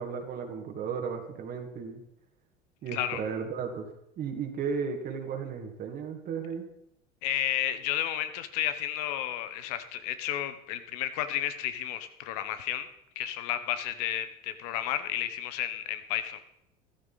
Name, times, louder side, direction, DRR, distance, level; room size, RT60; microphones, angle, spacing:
voice 1, 0.0-2.0 2.8-3.9 4.2-6.7, right 6 dB, 50° right, 3 dB, 2.1 m, -34 dB
voice 2, 2.9-3.2 7.2-12.9 13.1-16.4, left 11 dB, 75° left, 11 dB, 1.2 m, -32 dB
14.5 x 13.0 x 4.1 m, 0.80 s
hypercardioid pair, 85°, 20 cm